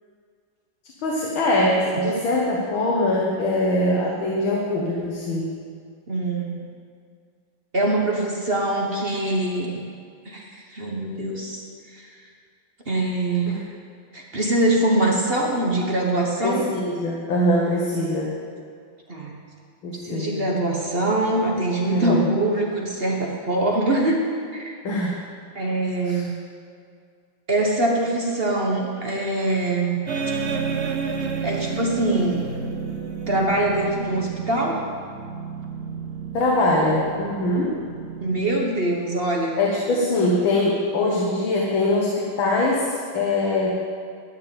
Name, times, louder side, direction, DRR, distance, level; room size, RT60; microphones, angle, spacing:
voice 1, 1.0-5.5 13.5-13.6 16.4-18.4 19.8-20.5 21.9-22.3 24.8-25.1 26.1-26.2 36.3-37.8 39.6-43.8, left 1 dB, 80° left, -3 dB, 2.3 m, -22 dB
voice 2, 6.1-6.6 7.7-9.8 10.2-10.4 10.7-11.6 11.9-12.1 12.9-13.6 14.1-16.6 19.1-19.3 20.0-24.7 25.5-26.3 27.5-30.0 31.4-32.5 33.3-34.8 38.2-39.5, right 1 dB, 30° right, -1 dB, 1.4 m, -23 dB
sound 1, 30.1-39.0, right 5 dB, 50° right, 0.9 m, -31 dB
12.5 x 6.8 x 8.9 m, 2.2 s
omnidirectional pair, 2.2 m